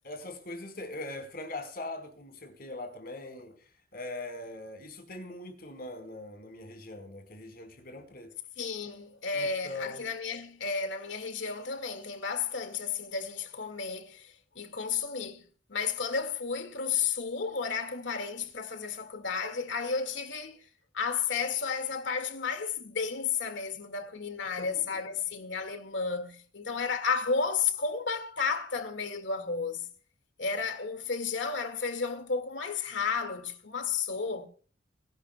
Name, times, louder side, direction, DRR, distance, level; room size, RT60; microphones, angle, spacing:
voice 1, 0.0-8.3 9.3-10.1 24.6-25.0, left 2 dB, 55° left, 4.5 m, -41 dB
voice 2, 8.6-15.4 15.7-20.6 20.9-29.9 30.4-34.5, left 5 dB, 80° left, 2.0 m, -32 dB
25.0 x 12.0 x 2.3 m
head